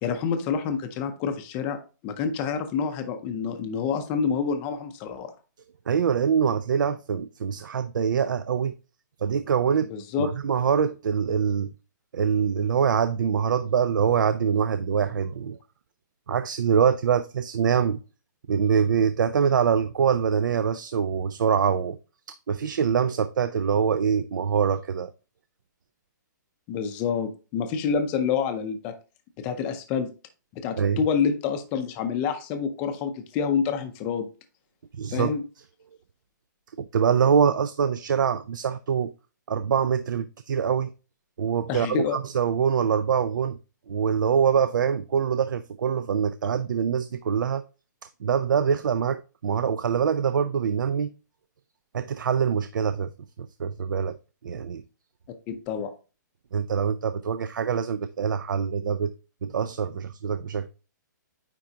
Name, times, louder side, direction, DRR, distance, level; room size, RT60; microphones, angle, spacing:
voice 1, 0.0-1.8 2.0-5.3 9.9-10.3 26.7-28.9 29.4-30.1 30.5-34.3 35.1-35.4 41.7-42.2 55.5-55.9, left 6 dB, 15° left, 0.5 m, -27 dB
voice 2, 5.9-8.7 9.2-9.9 10.2-11.7 12.1-15.6 16.3-18.0 18.5-22.0 22.3-25.1 30.8-31.0 35.0-35.3 36.8-39.1 39.5-40.9 41.4-43.6 43.9-47.6 48.2-51.1 51.9-53.1 53.6-54.2 54.4-54.8 56.5-59.1 59.4-60.7, right 7 dB, 80° right, 0.5 m, -24 dB
9.3 x 3.8 x 2.8 m
hypercardioid pair, 175°, 10 cm